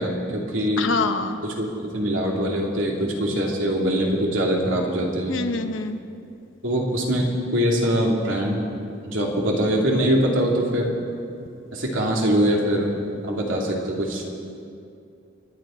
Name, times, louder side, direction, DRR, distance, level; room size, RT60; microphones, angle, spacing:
voice 1, 0.0-0.9 1.4-5.4 6.6-7.2 7.5-8.7 9.1-10.9 11.7-13.0 13.2-14.2, equal, 85° right, -1 dB, 2.6 m, -23 dB
voice 2, 0.8-1.3 5.3-6.0, left 3 dB, 80° left, 7 dB, 1.0 m, -25 dB
27.5 x 10.5 x 4.4 m, 2.5 s
head